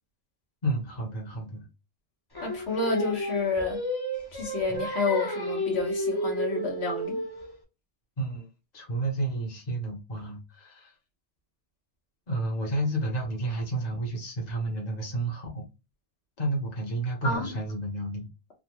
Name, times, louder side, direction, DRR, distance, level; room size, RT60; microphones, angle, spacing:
voice 1, 0.6-1.7 8.2-8.5 8.7-10.9 12.3-15.7 16.4-18.2, right 2 dB, 40° left, 1.2 m, -31 dB
Singing, 2.3-7.6, equal, 25° left, 0.9 m, -32 dB
voice 2, 2.4-3.8 4.3-7.2 17.2-17.5, left 3 dB, 85° left, 1.6 m, -29 dB
3.7 x 2.3 x 3.0 m
omnidirectional pair, 1.1 m